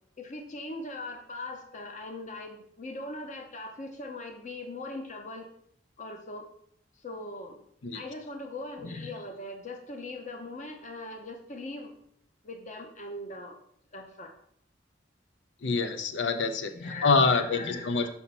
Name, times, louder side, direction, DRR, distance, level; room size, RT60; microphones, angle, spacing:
voice 1, 0.2-5.5 6.0-6.5 7.0-7.6 7.9-11.9 12.4-13.6 13.9-14.3 16.7-18.1, left 2 dB, 40° left, 4 dB, 0.9 m, -40 dB
voice 2, 15.6-16.7 17.0-18.1, left 4 dB, 80° left, 9 dB, 0.7 m, -25 dB
5.6 x 5.6 x 4.2 m, 0.67 s
head